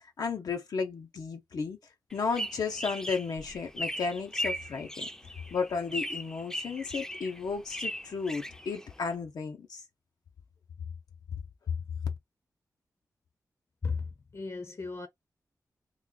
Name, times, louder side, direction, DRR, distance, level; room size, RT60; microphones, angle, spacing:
voice 1, 0.0-1.8 2.1-5.1 5.5-9.8, left 5 dB, 80° left, 0.7 m, -34 dB
sound 1, 2.1-9.1, equal, 10° left, 0.5 m, -38 dB
voice 2, 13.8-15.1, left 4 dB, 45° left, 0.7 m, -35 dB
3.1 x 2.3 x 3.8 m
cardioid pair, 75°, 7 cm